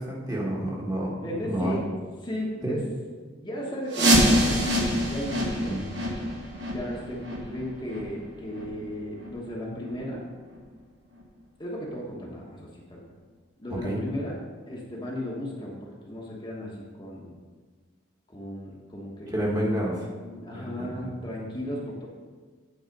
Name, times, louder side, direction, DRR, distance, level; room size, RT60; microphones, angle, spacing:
voice 1, 0.0-1.1 1.4-1.8 2.6-2.8 5.6-5.8 13.7-14.0 19.3-20.1 20.5-21.2, right 1 dB, 20° right, -4 dB, 1.4 m, -29 dB
voice 2, 1.2-1.8 2.2-2.8 3.4-5.9 6.7-10.2 11.6-13.0 13.6-14.4 14.7-17.3 18.3-19.7 20.2-22.1, equal, 25° left, -3 dB, 1.1 m, -35 dB
sound 1, 3.9-9.5 9.8-9.9 10.5-10.6 11.2-11.3 11.8-11.9, equal, 65° right, 1.6 m, -26 dB
9.1 x 4.2 x 5.3 m, 1.5 s
head